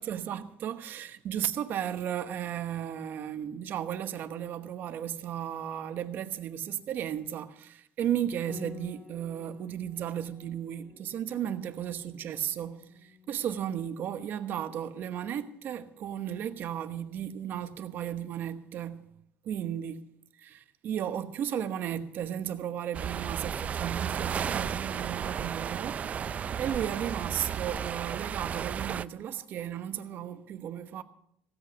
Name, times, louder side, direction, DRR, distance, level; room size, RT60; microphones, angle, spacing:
voice 1, 0.0-19.1 19.4-20.0 20.4-31.0, right 10 dB, 55° right, 1.1 m, -35 dB
Piano, 8.5-17.8, left 6 dB, 45° left, 4.2 m, -54 dB
sound 1, 22.9-29.0, right 8 dB, 35° right, 0.4 m, -33 dB
16.5 x 8.4 x 6.6 m
cardioid pair, 120°, 4 cm